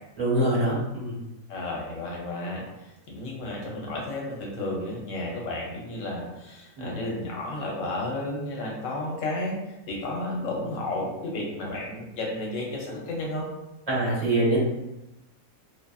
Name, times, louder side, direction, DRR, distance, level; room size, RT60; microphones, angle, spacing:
voice 1, 0.2-1.2 6.8-6.9 13.9-14.6, right 1 dB, 30° right, -7 dB, 0.8 m, -24 dB
voice 2, 1.5-9.6 9.9-13.4, left 2 dB, 70° left, -2 dB, 1.0 m, -32 dB
2.6 x 2.3 x 2.3 m, 0.93 s
omnidirectional pair, 1.5 m